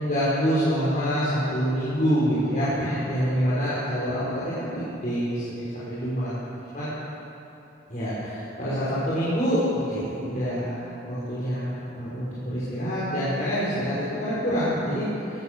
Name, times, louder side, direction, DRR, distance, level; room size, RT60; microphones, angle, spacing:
voice 1, 0.0-6.3 6.7-6.9 7.9-15.4, equal, 45° left, -11 dB, 5.8 m, -26 dB
21.0 x 17.5 x 7.0 m, 2.9 s
head